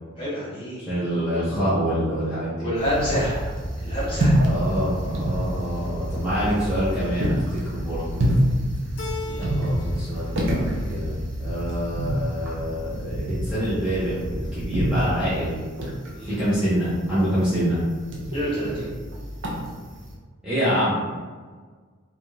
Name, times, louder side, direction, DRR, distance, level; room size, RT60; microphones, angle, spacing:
voice 1, 0.2-1.0 2.6-3.4 3.8-4.3 9.2-9.5 16.1-16.4 18.3-18.9, equal, 25° left, -9 dB, 1.1 m, -28 dB
voice 2, 0.9-2.7 4.4-8.2 9.4-11.1 11.4-15.6 16.2-17.8 20.4-21.0, equal, 5° right, -13 dB, 0.6 m, -26 dB
sound 1, 2.7-20.1, equal, 60° right, 0.5 m, -27 dB
Keyboard (musical), 9.0-10.1 10.4-11.1, left 3 dB, 70° left, 0.5 m, -37 dB
2.5 x 2.2 x 3.0 m, 1.5 s
head